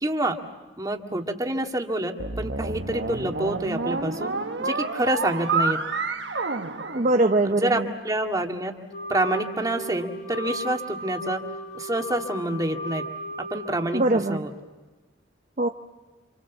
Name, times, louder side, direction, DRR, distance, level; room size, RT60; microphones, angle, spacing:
voice 1, 0.0-0.4 0.8-4.3 4.6-5.8 7.4-8.7 9.1-11.4 11.7-13.0 13.5-14.0 14.3-14.5, right 1 dB, 20° right, 3 dB, 2.2 m, -27 dB
sound 1, 2.2-7.7, right 4 dB, 70° right, 1.5 m, -29 dB
voice 2, 6.9-7.9 13.9-14.5 15.6-15.7, right 2 dB, 45° right, 5 dB, 0.9 m, -22 dB
Wind instrument woodwind instrument, 8.9-14.5, equal, 55° left, 5.7 m, -36 dB
29.0 x 27.5 x 7.3 m, 1.3 s
head